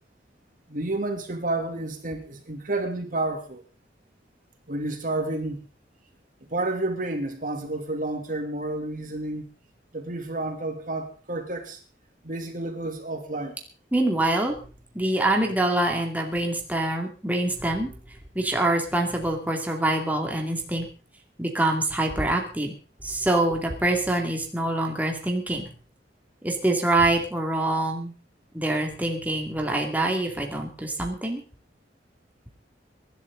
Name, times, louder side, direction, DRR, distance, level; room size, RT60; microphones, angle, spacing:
voice 1, 0.7-3.6 4.7-5.6 6.5-9.4 9.9-11.8 12.2-13.6, right 2 dB, 50° right, 4 dB, 2.9 m, -30 dB
voice 2, 13.9-14.6 14.9-17.9 18.3-20.8 21.4-22.7 23.0-25.7 26.4-28.1 28.5-31.4, right 2 dB, 10° right, 1 dB, 2.5 m, -25 dB
24.0 x 11.5 x 3.9 m, 0.36 s
head